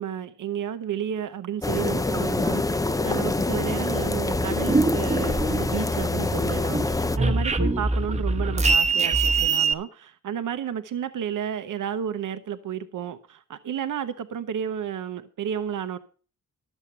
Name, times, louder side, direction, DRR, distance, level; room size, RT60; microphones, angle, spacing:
voice 1, 0.0-2.6 3.0-16.0, right 8 dB, 75° right, 0.9 m, -32 dB
sound 1, 1.6-7.2, left 2 dB, 10° left, 0.5 m, -25 dB
sound 2, 4.3-6.0 6.4-9.7, right 3 dB, 20° right, 1.1 m, -23 dB
12.5 x 7.2 x 6.7 m
wide cardioid pair, 135°, 32 cm